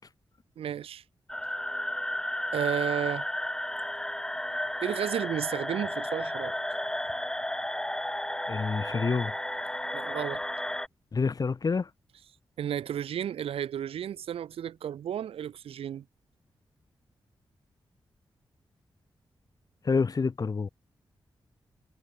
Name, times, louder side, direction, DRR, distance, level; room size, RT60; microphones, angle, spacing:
voice 1, 0.6-1.0 2.5-3.2 4.8-6.6 9.9-10.4 12.6-16.0, right 9 dB, 85° right, 1.0 m, -32 dB
sound 1, 1.3-10.9, left 1 dB, 5° left, 0.9 m, -33 dB
voice 2, 8.5-9.3 11.1-11.9 19.9-20.7, left 4 dB, 40° left, 0.5 m, -27 dB
cardioid pair, 45°, 9 cm